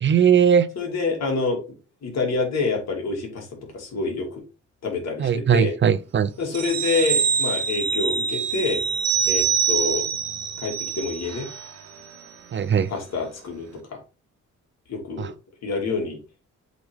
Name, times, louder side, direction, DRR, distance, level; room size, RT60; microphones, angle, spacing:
voice 1, 0.0-0.7 5.2-6.3 12.5-12.9 15.2-15.3, right 8 dB, 40° right, 0.6 m, -19 dB
voice 2, 0.8-1.6 2.0-3.5 3.7-4.4 4.8-5.7 6.4-8.8 9.2-10.1 10.6-11.5 12.9-14.0 14.9-15.3 15.6-16.2, left 4 dB, 60° left, 2.7 m, -27 dB
sound 1, 6.5-11.6 12.0-12.1, right 7 dB, 60° right, 1.3 m, -25 dB
7.8 x 3.9 x 3.5 m
cardioid pair, 90°, 30 cm